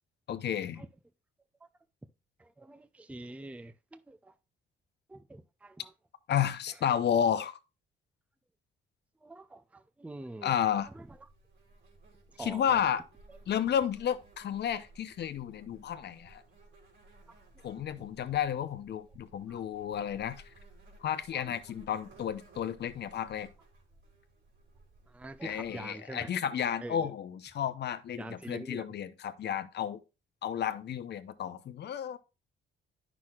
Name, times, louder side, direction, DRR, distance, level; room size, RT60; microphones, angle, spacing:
voice 1, 0.3-0.8 6.3-7.6 10.4-10.9 12.4-13.0 13.5-16.4 17.6-20.4 21.0-23.5 25.4-30.0 30.4-32.2, left 9 dB, 60° left, 0.7 m, -32 dB
voice 2, 2.4-4.3 5.1-5.9 9.2-10.6 10.9-11.2 12.4-12.8 15.9-16.0 17.5-17.6 17.9-18.0 19.5-19.6 20.0-20.1 21.3-21.6 25.1-26.3 26.8-27.1 28.1-28.9, right 2 dB, 5° right, 0.5 m, -45 dB
Insect, 10.6-25.8, right 2 dB, 70° right, 3.2 m, -58 dB
9.5 x 6.0 x 2.4 m
cardioid pair, 90°, 20 cm